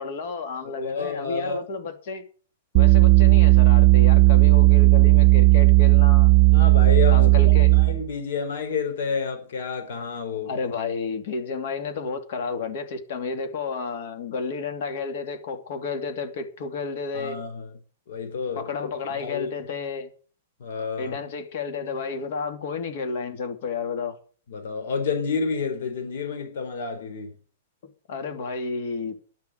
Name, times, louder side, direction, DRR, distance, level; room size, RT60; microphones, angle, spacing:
voice 1, 0.0-2.2 2.7-6.3 7.1-7.7 10.4-17.4 18.5-20.1 21.0-24.2 28.1-29.2, left 4 dB, 50° left, 2.6 m, -31 dB
voice 2, 0.6-1.6 6.5-7.3 7.7-10.5 17.1-17.8 18.1-18.7 19.2-19.5 20.6-21.2 24.5-27.3, left 5 dB, 65° left, 4.1 m, -30 dB
sound 1, 2.8-8.0, right 29 dB, 30° right, 0.5 m, -15 dB
11.5 x 7.2 x 8.1 m
supercardioid pair, 170°, 0 cm